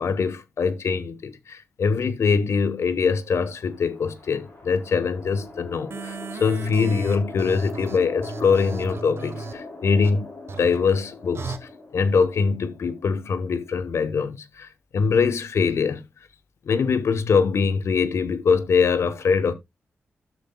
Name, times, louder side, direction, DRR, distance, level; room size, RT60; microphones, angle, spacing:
voice 1, 0.0-10.3 10.6-11.5 11.9-16.0 16.7-19.5, left 5 dB, 75° left, 0.9 m, -23 dB
sound 1, 3.2-13.7, left 2 dB, 50° left, 5.2 m, -40 dB
sound 2, 5.9-9.5 10.0-10.1 10.5-10.8 11.3-11.6, right 5 dB, 60° right, 1.0 m, -35 dB
12.5 x 6.7 x 2.2 m
cardioid pair, 70°, 5 cm